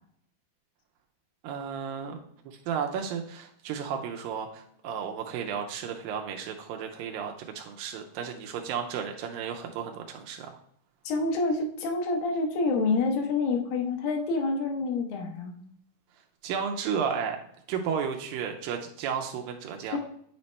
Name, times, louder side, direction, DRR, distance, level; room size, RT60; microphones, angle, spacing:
voice 1, 1.4-10.6 16.4-17.4 17.7-20.0, right 7 dB, 85° right, 3 dB, 2.3 m, -33 dB
voice 2, 11.1-15.6 19.9-20.0, left 3 dB, 80° left, 2 dB, 2.6 m, -27 dB
9.5 x 4.1 x 3.2 m, 0.67 s
omnidirectional pair, 4.1 m